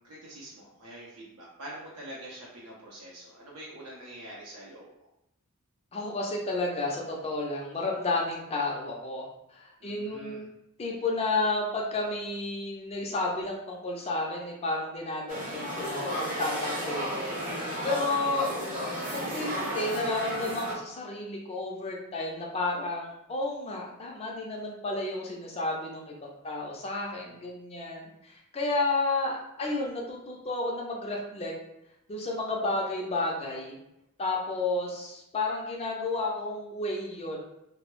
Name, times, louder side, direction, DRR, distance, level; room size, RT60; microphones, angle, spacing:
voice 1, 0.0-5.1 9.8-10.5 17.8-18.0 27.2-27.4, right 1 dB, 70° right, -5 dB, 0.6 m, -45 dB
voice 2, 5.9-9.3 9.5-10.4 10.8-18.5 19.1-31.5 32.1-33.7 34.2-37.4, left 2 dB, 25° left, -1 dB, 0.4 m, -32 dB
sound 1, 15.3-20.8, equal, 35° right, 0.7 m, -33 dB
2.2 x 2.0 x 3.0 m, 0.85 s
head